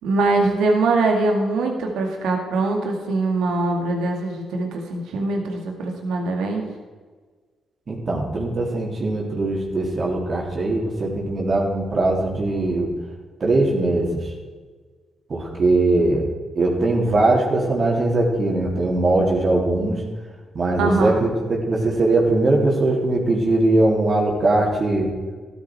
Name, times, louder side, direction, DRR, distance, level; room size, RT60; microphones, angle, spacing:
voice 1, 0.0-6.6 20.8-21.2, right 3 dB, 80° right, 2 dB, 2.4 m, -22 dB
voice 2, 7.9-12.9 13.4-14.3 15.3-16.3 16.5-20.0 20.5-25.1, right 2 dB, 50° right, -2 dB, 3.5 m, -20 dB
14.0 x 12.0 x 4.8 m, 1.4 s
supercardioid pair, 55°, 0 cm